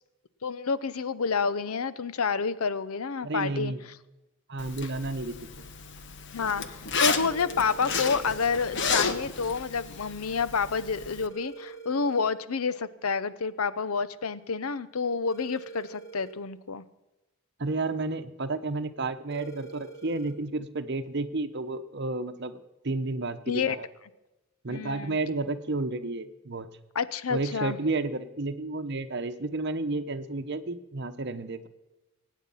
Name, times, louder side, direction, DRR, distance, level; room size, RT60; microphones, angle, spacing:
voice 1, 0.4-3.7 6.3-16.8 23.5-23.8 24.7-25.2 26.9-27.8, left 5 dB, 85° left, 16 dB, 0.7 m, -29 dB
voice 2, 3.2-3.8 4.5-5.7 17.6-23.9 24.6-26.7 27.3-31.7, right 2 dB, 50° right, 9 dB, 0.9 m, -31 dB
Zipper (clothing), 4.6-11.3, left 5 dB, 55° left, 1.1 m, -32 dB
sound 1, 7.3-8.3 11.3-12.3 15.3-16.3 19.3-20.3, right 4 dB, 15° left, 1.6 m, -45 dB
23.5 x 9.3 x 5.6 m, 1.0 s
head